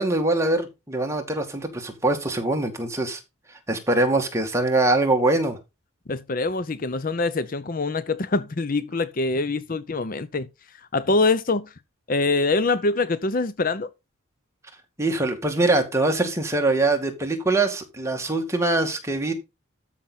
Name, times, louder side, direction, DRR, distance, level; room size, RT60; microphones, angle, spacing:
voice 1, 0.0-3.2 3.7-5.6 15.0-19.3, right 2 dB, 15° right, 2.1 m, -23 dB
voice 2, 6.1-10.5 10.9-11.7 12.1-13.9, left 3 dB, 40° left, 0.6 m, -24 dB
13.0 x 6.0 x 4.1 m
head